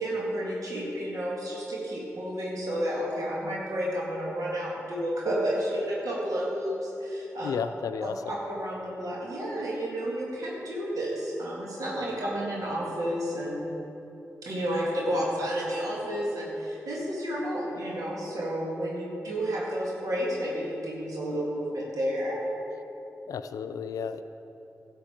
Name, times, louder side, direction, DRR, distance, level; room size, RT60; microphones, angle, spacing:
voice 1, 0.0-7.5 8.0-13.6 14.4-22.4, equal, 75° right, -4 dB, 2.0 m, -31 dB
voice 2, 7.4-8.3 23.3-24.2, left 6 dB, 85° left, 10 dB, 0.4 m, -33 dB
11.5 x 7.7 x 4.5 m, 2.9 s
cardioid pair, 40°, 6 cm